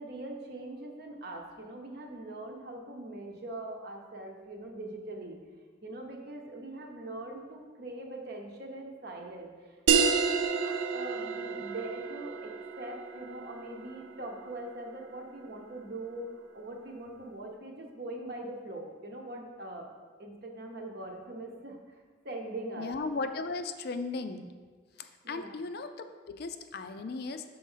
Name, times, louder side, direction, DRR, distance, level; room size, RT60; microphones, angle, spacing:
voice 1, 0.0-5.4 5.8-19.9 20.2-21.8 22.2-22.9 25.2-25.6, right 1 dB, 50° right, 1 dB, 0.9 m, -42 dB
sound 1, 9.9-15.0, right 6 dB, 75° right, 0.5 m, -30 dB
voice 2, 22.8-24.5 25.0-27.4, left 3 dB, 50° left, 8 dB, 0.4 m, -36 dB
6.1 x 4.5 x 5.6 m, 1.5 s
head